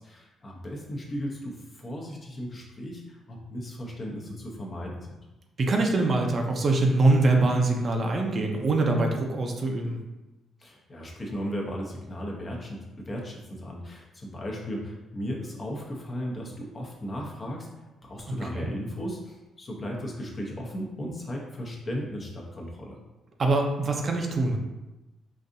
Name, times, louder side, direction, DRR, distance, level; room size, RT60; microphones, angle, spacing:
voice 1, 0.0-5.2 10.6-17.7 18.0-23.0, equal, 35° left, -1 dB, 0.8 m, -36 dB
voice 2, 5.6-10.0 18.5-18.7 23.4-24.6, right 2 dB, 45° right, 2 dB, 0.5 m, -24 dB
3.9 x 2.6 x 2.6 m, 1.0 s
cardioid pair, 90°, 0 cm